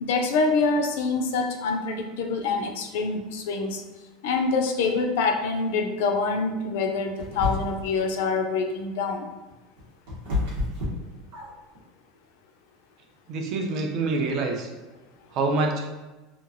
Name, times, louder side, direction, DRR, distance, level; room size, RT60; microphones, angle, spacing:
voice 1, 0.0-3.8 4.2-9.3, left 4 dB, 70° left, 5 dB, 0.4 m, -25 dB
sound 1, 7.2-8.0 9.5-11.8, left 2 dB, 80° right, 0.9 m, -29 dB
voice 2, 13.3-14.7 15.3-15.8, right 3 dB, 35° right, 2 dB, 0.4 m, -26 dB
2.9 x 2.3 x 2.5 m, 1.2 s
supercardioid pair, 180°, 0 cm